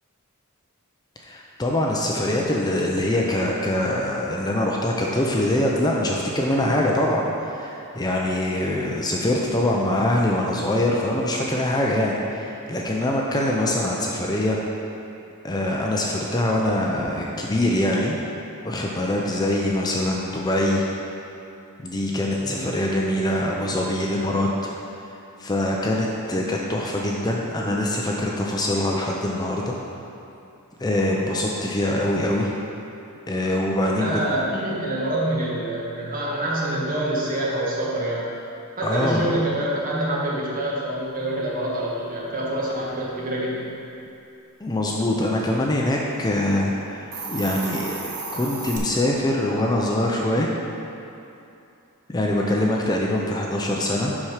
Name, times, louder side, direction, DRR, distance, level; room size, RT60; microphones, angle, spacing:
voice 1, 1.3-14.6 15.4-18.2 18.6-20.8 21.8-24.5 25.4-29.7 30.8-32.5 33.3-34.2 38.8-39.3 44.6-47.9 48.3-50.5 52.1-54.2, left 1 dB, 20° left, -2 dB, 0.6 m, -23 dB
voice 2, 34.0-38.3 38.8-43.7, right 1 dB, 40° right, -5 dB, 1.5 m, -26 dB
Hiss, 47.0-48.8, right 3 dB, 85° right, 1.2 m, -33 dB
7.3 x 6.0 x 4.9 m, 2.7 s
head